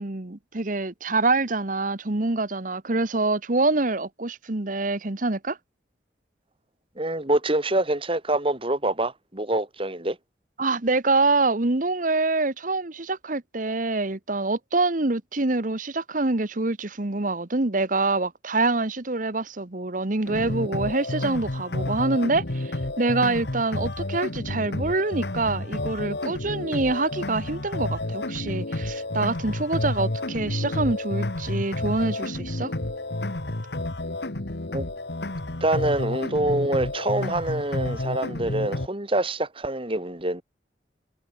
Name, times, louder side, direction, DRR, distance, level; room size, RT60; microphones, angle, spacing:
voice 1, 0.0-5.6 10.6-32.7, right 3 dB, 45° right, 1.2 m, -25 dB
voice 2, 7.0-10.2 34.7-34.9 35.6-40.4, right 1 dB, 30° right, 2.2 m, -25 dB
sound 1, 20.3-38.9, left 1 dB, 60° left, 1.7 m, -30 dB
head